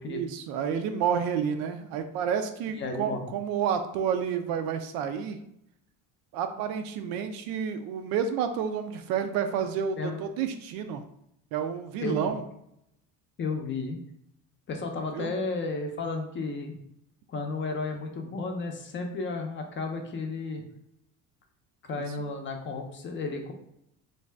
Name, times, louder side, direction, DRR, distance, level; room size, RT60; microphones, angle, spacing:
voice 1, 0.1-5.4 6.3-11.0 11.5-12.4 15.1-15.3 21.9-22.0, right 7 dB, 85° right, 8 dB, 0.5 m, -30 dB
voice 2, 2.8-3.3 10.0-10.2 12.0-12.3 13.4-14.0 14.7-16.8 17.3-20.6 21.9-23.5, left 3 dB, 35° left, 3 dB, 0.5 m, -33 dB
2.6 x 2.2 x 3.3 m, 0.77 s
cardioid pair, 120°, 35 cm